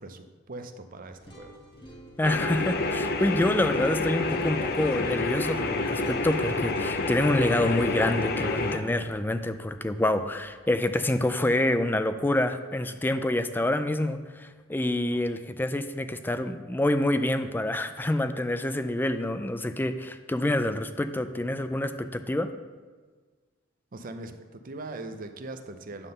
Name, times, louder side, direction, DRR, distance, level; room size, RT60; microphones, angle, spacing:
voice 1, 0.0-1.5 23.9-26.1, right 2 dB, 45° right, 8 dB, 0.6 m, -40 dB
sound 1, 1.1-11.1, equal, 25° left, 1.2 m, -47 dB
sound 2, 2.2-8.8, left 3 dB, 55° left, 0.6 m, -28 dB
voice 2, 2.2-22.5, left 1 dB, 10° left, 9 dB, 0.4 m, -27 dB
9.7 x 3.7 x 6.6 m, 1.4 s
head